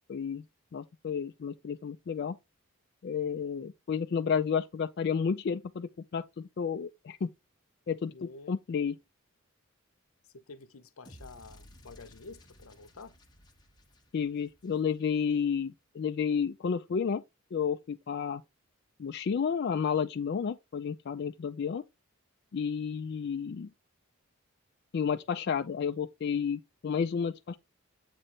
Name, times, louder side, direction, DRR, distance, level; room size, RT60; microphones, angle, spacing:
voice 1, 0.1-0.4 0.7-2.4 3.0-7.3 7.9-9.0 14.1-17.2 17.5-18.4 19.0-21.8 22.5-23.7 24.9-27.6, left 6 dB, 50° left, 0.3 m, -31 dB
voice 2, 8.1-8.6 10.3-13.2, left 3 dB, 85° left, 0.7 m, -49 dB
sound 1, 11.0-15.3, equal, 20° left, 1.3 m, -56 dB
7.6 x 3.1 x 4.1 m
head